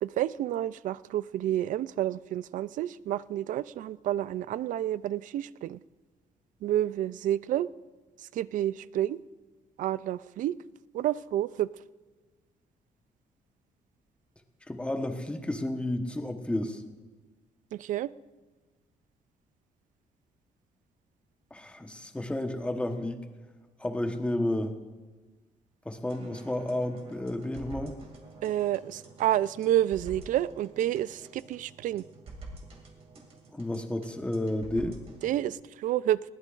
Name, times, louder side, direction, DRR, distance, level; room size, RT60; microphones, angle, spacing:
voice 1, 0.0-5.8 6.6-7.7 8.2-9.2 9.8-10.5 10.9-11.7 17.7-18.1 28.4-32.0 35.2-36.2, right 12 dB, 70° right, 18 dB, 0.4 m, -29 dB
voice 2, 14.7-16.8 21.5-23.2 23.8-24.8 25.8-28.0 33.5-35.0, left 1 dB, 10° left, 5 dB, 1.1 m, -31 dB
sound 1, 26.1-35.5, right 2 dB, 45° right, 2.5 m, -48 dB
21.0 x 16.0 x 2.5 m, 1.3 s
cardioid pair, 125°, 14 cm